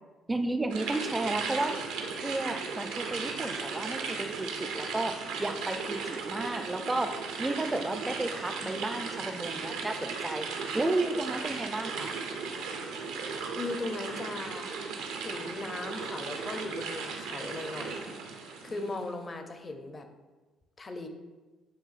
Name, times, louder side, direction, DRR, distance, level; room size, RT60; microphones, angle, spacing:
voice 1, 0.3-1.8 2.2-10.5 10.7-12.1, right 2 dB, 20° right, 8 dB, 0.4 m, -33 dB
sound 1, 0.7-19.0, right 5 dB, 80° right, 0.5 m, -36 dB
voice 2, 13.1-14.8 15.2-20.1 20.8-21.1, left 2 dB, 30° left, 6 dB, 0.5 m, -38 dB
7.1 x 2.6 x 2.4 m, 1.2 s
hypercardioid pair, 60°, 0 cm